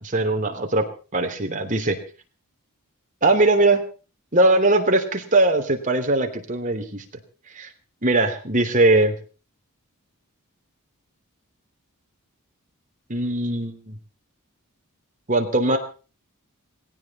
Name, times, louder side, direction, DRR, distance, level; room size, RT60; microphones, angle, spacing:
voice 1, 0.0-0.8 1.1-2.0 3.2-3.8 4.3-7.0 7.5-7.7 8.0-9.1 13.1-14.0 15.3-15.8, right 2 dB, 35° right, 4 dB, 3.0 m, -20 dB
19.5 x 17.0 x 4.3 m, 0.37 s
head